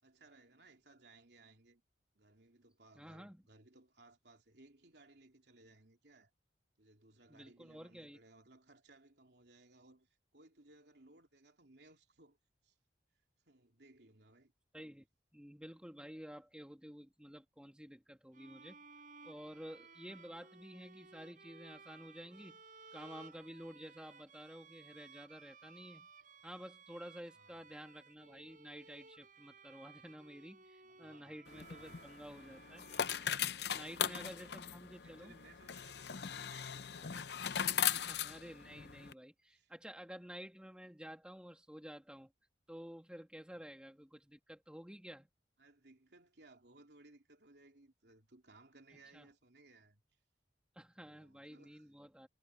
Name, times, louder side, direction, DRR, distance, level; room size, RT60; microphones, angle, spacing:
voice 1, 0.0-1.8 2.1-6.3 6.8-12.4 12.6-12.8 13.4-14.5 27.3-27.6 30.8-32.1 33.6-34.6 35.0-38.1 39.4-39.7 43.5-43.6 45.6-50.0 51.0-51.9, right 2 dB, 70° right, 3.2 m, -63 dB
voice 2, 3.0-3.4 7.3-8.2 14.7-15.1 15.3-18.8 19.2-22.6 22.9-26.1 26.4-32.9 33.7-35.3 37.8-42.3 42.7-45.3 49.1-49.3 50.7-52.3, equal, 5° right, 2.4 m, -51 dB
sound 1, 18.3-34.0, right 4 dB, 50° right, 4.4 m, -59 dB
sound 2, 31.5-39.1, left 9 dB, 70° left, 0.7 m, -39 dB
head